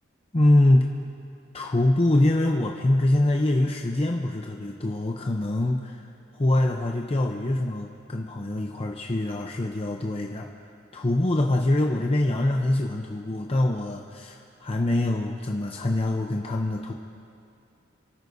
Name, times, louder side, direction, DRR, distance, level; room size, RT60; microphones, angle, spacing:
voice 1, 0.3-0.9 1.5-6.1 6.3-10.7 10.9-16.9, left 1 dB, 30° left, 1 dB, 0.7 m, -24 dB
29.0 x 14.0 x 2.7 m, 2.6 s
head